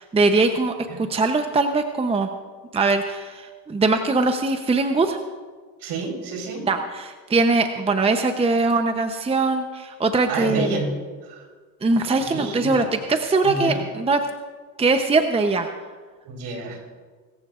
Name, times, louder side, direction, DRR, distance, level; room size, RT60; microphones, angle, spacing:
voice 1, 0.0-2.3 2.7-5.2 6.7-10.7 11.8-14.2 14.8-15.7, right 3 dB, 15° right, 7 dB, 0.8 m, -21 dB
voice 2, 5.8-6.7 10.3-11.0 11.2-11.4 12.2-12.9 13.4-13.9 16.2-16.8, right 2 dB, 65° right, 1 dB, 4.4 m, -29 dB
21.5 x 14.5 x 2.5 m, 1.5 s
supercardioid pair, 100°, 42 cm